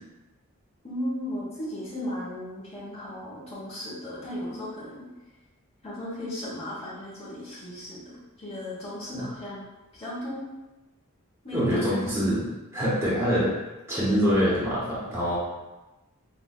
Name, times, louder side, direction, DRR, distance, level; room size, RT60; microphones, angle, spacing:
voice 1, 0.8-5.0 5.8-9.7 9.9-10.4 11.4-12.0, left 1 dB, 25° left, -8 dB, 1.1 m, -36 dB
voice 2, 11.5-12.5 12.7-13.5 13.9-15.4, equal, 10° right, -9 dB, 1.0 m, -24 dB
6.4 x 2.5 x 2.3 m, 1.1 s
head